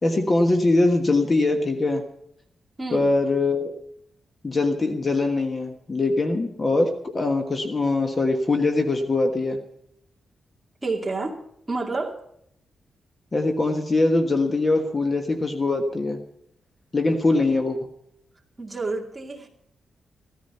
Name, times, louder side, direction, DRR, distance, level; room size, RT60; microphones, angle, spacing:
voice 1, 0.0-2.0 2.9-3.7 4.4-9.6 13.3-16.2 16.9-17.8, left 2 dB, 25° left, 5 dB, 1.3 m, -22 dB
voice 2, 2.8-3.1 10.8-11.4 11.7-12.2 18.6-19.5, right 3 dB, 15° right, 0 dB, 2.3 m, -29 dB
15.5 x 14.0 x 5.5 m, 0.71 s
wide cardioid pair, 170°, 0 cm